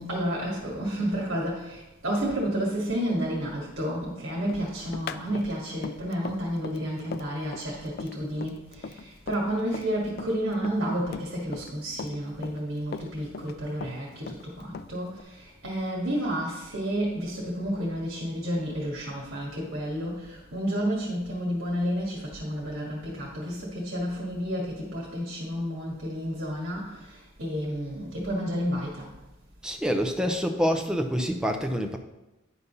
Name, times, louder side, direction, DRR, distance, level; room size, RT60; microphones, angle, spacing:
voice 1, 0.0-29.1, equal, 65° right, -4 dB, 2.0 m, -31 dB
Run, 4.5-9.9 10.2-11.7 12.0-13.5 13.8-15.2, left 5 dB, 50° left, 0.3 m, -39 dB
voice 2, 29.6-32.0, equal, 5° right, 3 dB, 0.6 m, -26 dB
9.6 x 4.1 x 5.4 m, 0.99 s
head